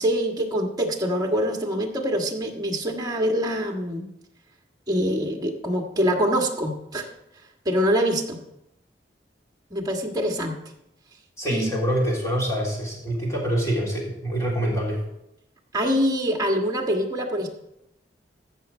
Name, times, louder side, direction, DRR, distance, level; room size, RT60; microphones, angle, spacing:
voice 1, 0.0-4.1 4.9-7.1 7.6-8.4 9.7-10.6 11.5-11.7 15.7-17.5, equal, 25° right, 2 dB, 1.6 m, -24 dB
voice 2, 11.4-15.0, equal, 20° left, -4 dB, 3.5 m, -25 dB
15.5 x 6.4 x 4.4 m, 0.83 s
head